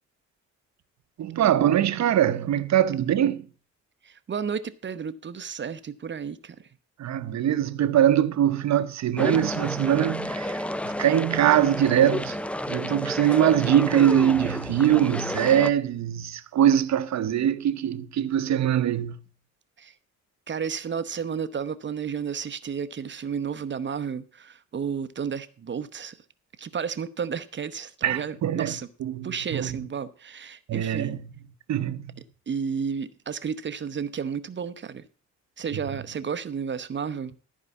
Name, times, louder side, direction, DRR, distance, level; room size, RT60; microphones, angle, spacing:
voice 1, 1.2-3.5 7.0-12.4 12.7-19.2 28.0-28.7 29.0-29.8 30.7-31.2 31.7-32.2, right 10 dB, 65° right, 0.9 m, -22 dB
voice 2, 4.0-6.7 19.8-20.0 20.5-26.2 26.6-28.9 29.2-31.2 32.5-35.1 35.6-37.4, right 6 dB, 40° right, 0.8 m, -32 dB
sound 1, 9.2-15.7, left 1 dB, 5° left, 0.4 m, -31 dB
14.0 x 4.8 x 7.1 m
cardioid pair, 90°, 30 cm